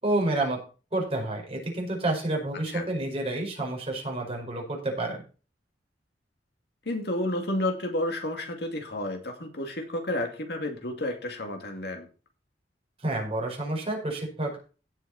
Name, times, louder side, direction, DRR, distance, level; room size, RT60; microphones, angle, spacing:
voice 1, 0.0-0.6 0.9-5.2 13.0-14.6, right 2 dB, 35° right, 0 dB, 5.2 m, -29 dB
voice 2, 6.9-12.1, left 1 dB, 65° left, 3 dB, 2.4 m, -31 dB
17.0 x 6.5 x 4.2 m, 0.36 s
head